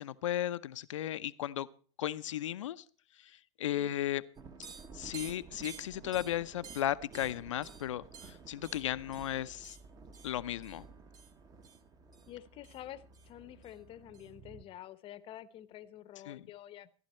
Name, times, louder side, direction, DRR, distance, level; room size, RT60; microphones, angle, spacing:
voice 1, 0.0-1.7 2.0-2.8 3.2-4.2 4.9-9.8 10.2-10.8 16.3-16.5, left 12 dB, 80° left, 15 dB, 0.7 m, -35 dB
sound 1, 4.4-14.6, right 5 dB, 25° right, 1.3 m, -51 dB
voice 2, 12.3-16.9, left 12 dB, 35° left, 15 dB, 0.9 m, -49 dB
14.5 x 11.5 x 4.3 m, 0.41 s
hypercardioid pair, 115°, 16 cm